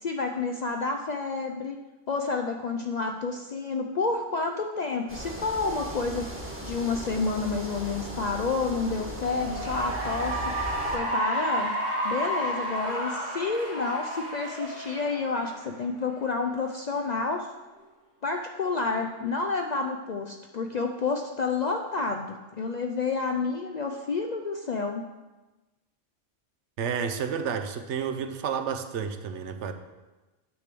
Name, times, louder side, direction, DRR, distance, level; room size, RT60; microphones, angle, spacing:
voice 1, 0.0-1.8 2.1-6.3 6.6-10.4 10.9-11.7 12.0-17.5 18.2-25.0, left 4 dB, 70° left, 4 dB, 0.4 m, -29 dB
sound 1, 5.1-11.0, right 1 dB, 10° right, 1.2 m, -38 dB
Cheering / Applause, 9.1-15.8, right 1 dB, 40° right, 1.8 m, -31 dB
voice 2, 26.8-29.7, right 7 dB, 65° right, 8 dB, 0.9 m, -30 dB
9.5 x 3.4 x 6.7 m, 1.1 s
omnidirectional pair, 1.3 m